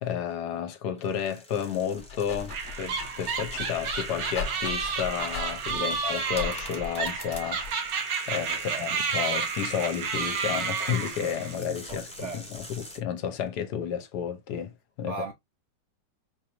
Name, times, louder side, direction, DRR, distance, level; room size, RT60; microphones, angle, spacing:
voice 1, 0.0-7.6 8.3-12.4 12.7-14.7 15.0-15.1, left 8 dB, 75° left, 1.2 m, -31 dB
sound 1, 1.0-13.0, left 1 dB, 5° left, 0.7 m, -46 dB
Dog, 1.8-7.9, left 4 dB, 40° left, 0.7 m, -40 dB
sound 2, 2.5-11.6, right 5 dB, 85° right, 1.7 m, -31 dB
voice 2, 8.5-8.9 11.9-12.5 15.0-15.3, right 4 dB, 70° right, 0.7 m, -38 dB
4.6 x 2.5 x 2.8 m
omnidirectional pair, 1.9 m